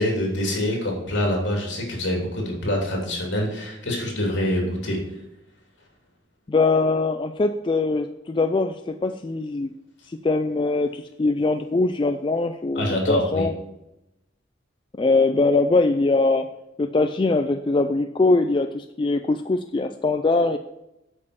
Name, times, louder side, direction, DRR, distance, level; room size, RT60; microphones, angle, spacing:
voice 1, 0.0-5.0 12.7-13.5, left 1 dB, 70° left, 0 dB, 3.0 m, -25 dB
voice 2, 6.5-9.7 10.1-13.5 15.0-16.5 16.8-20.6, left 3 dB, 25° left, 7 dB, 0.3 m, -22 dB
8.3 x 5.3 x 6.9 m, 0.90 s
head